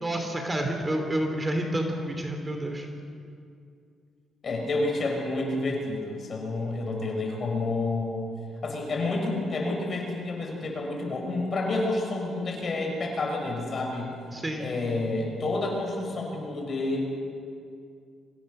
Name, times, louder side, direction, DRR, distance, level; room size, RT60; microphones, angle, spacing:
voice 1, 0.0-2.9 14.3-14.8, right 1 dB, 20° right, 4 dB, 2.8 m, -29 dB
voice 2, 4.4-8.3 8.6-14.1 14.6-17.0, left 2 dB, 45° left, 1 dB, 6.0 m, -29 dB
25.0 x 17.0 x 6.6 m, 2.4 s
cardioid pair, 90°, 0 cm